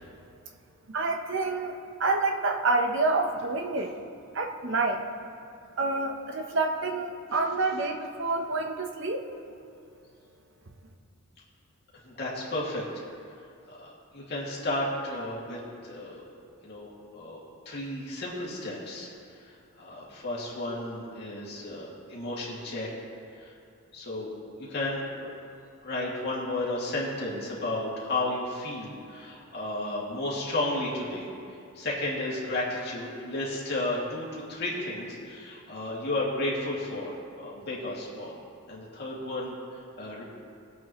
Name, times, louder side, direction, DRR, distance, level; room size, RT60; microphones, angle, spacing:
voice 1, 0.9-3.9 4.3-5.0 5.8-9.2, right 3 dB, 55° right, 3 dB, 0.9 m, -28 dB
voice 2, 12.0-13.0 13.7-16.2 16.6-22.9 23.3-23.5 23.9-24.3 24.7-25.3 25.8-38.4 38.7-40.2, left 1 dB, 45° left, -5 dB, 2.4 m, -33 dB
20.5 x 8.3 x 3.1 m, 2.4 s
head